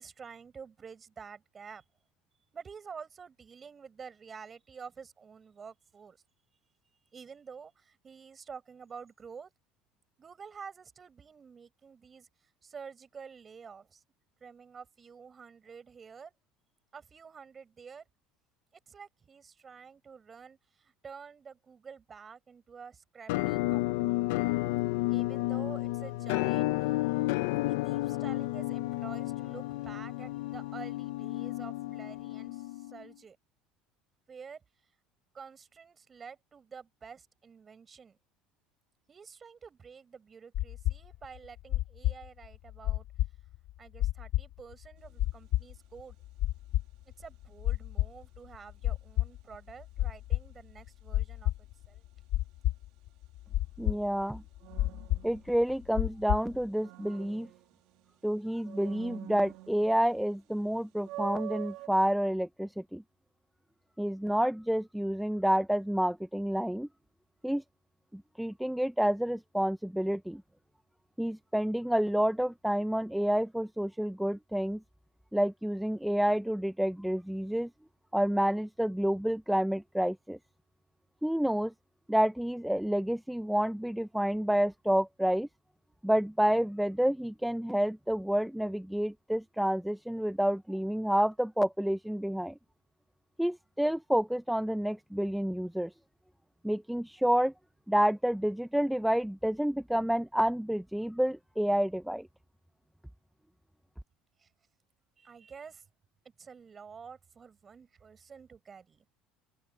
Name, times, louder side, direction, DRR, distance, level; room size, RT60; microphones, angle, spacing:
voice 1, 0.0-1.8 2.5-6.2 7.1-9.5 10.2-12.3 12.6-14.0 14.4-16.3 16.9-18.0 18.9-24.2 25.1-26.9 27.6-33.4 34.3-34.6 35.3-38.2 39.1-43.1 43.8-46.2 47.2-52.0 104.4-104.5 105.2-105.8 106.4-109.0, right 6 dB, 25° right, 6.3 m, -49 dB
Musical instrument, 23.3-33.1, left 19 dB, 90° left, 0.6 m, -31 dB
sound 1, 40.5-56.6, left 15 dB, 55° left, 0.9 m, -31 dB
sound 2, 45.0-45.3 54.6-56.0 56.5-58.1 58.6-60.2 60.5-60.6 61.0-61.9, right 18 dB, 70° right, 1.8 m, -45 dB
voice 2, 53.8-54.4 55.2-57.5 58.2-63.0 64.0-66.9 67.4-67.6 68.1-70.4 71.2-74.8 75.3-77.7 78.1-80.4 81.2-81.7 82.1-85.5 86.0-92.6 93.4-95.9 96.6-97.5 97.9-102.3, equal, ahead, 0.5 m, -29 dB
open air
cardioid pair, 140°, 0 cm